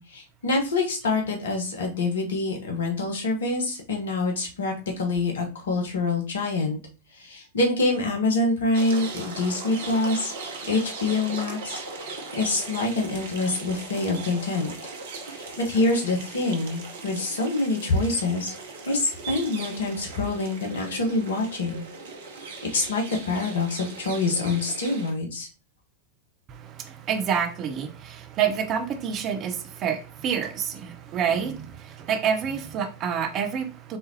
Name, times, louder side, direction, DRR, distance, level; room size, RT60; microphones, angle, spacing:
voice 1, 0.0-6.8 7.1-10.3 10.7-11.8 12.4-14.7 15.3-18.5 18.9-21.8 22.7-25.5, left 2 dB, 65° left, 1.1 m, -26 dB
sound 1, 8.7-25.1, right 4 dB, 60° right, 0.9 m, -38 dB
voice 2, 26.5-34.0, right 7 dB, 35° right, 0.6 m, -28 dB
4.3 x 3.5 x 2.8 m
figure-of-eight pair, 90°, 0 cm